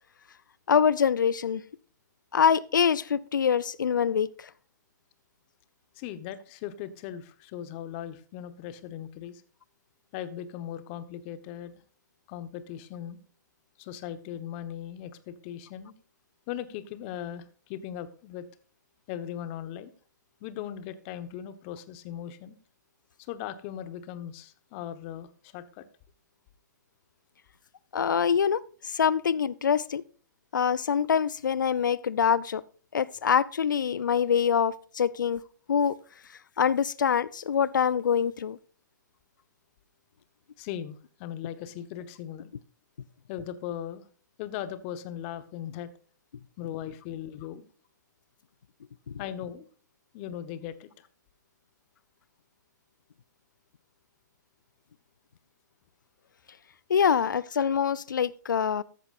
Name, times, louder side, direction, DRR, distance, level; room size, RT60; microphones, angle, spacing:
voice 1, 0.7-1.6 2.3-4.5 27.9-30.0 30.5-32.6 32.9-35.4 35.7-36.0 36.6-38.6 49.1-49.2 56.9-58.8, left 7 dB, 85° left, 0.5 m, -25 dB
voice 2, 5.9-9.4 10.1-11.8 12.3-13.2 13.8-15.9 16.5-18.5 19.1-19.9 20.4-22.6 23.2-25.9 40.6-42.5 43.3-44.0 44.4-45.9 46.6-47.7 49.2-49.7 50.1-51.1, left 10 dB, 40° left, 1.2 m, -38 dB
14.5 x 10.5 x 2.5 m
hypercardioid pair, 125°, 10 cm